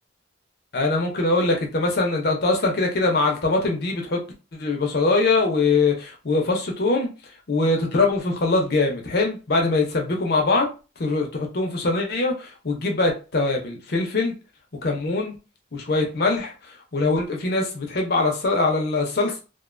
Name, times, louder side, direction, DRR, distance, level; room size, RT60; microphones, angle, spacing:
voice 1, 0.7-4.2 4.5-7.1 7.5-10.7 11.0-14.3 14.8-15.3 15.7-16.5 16.9-19.3, left 3 dB, 60° left, 2 dB, 0.6 m, -22 dB
2.5 x 2.2 x 2.4 m, 0.32 s
head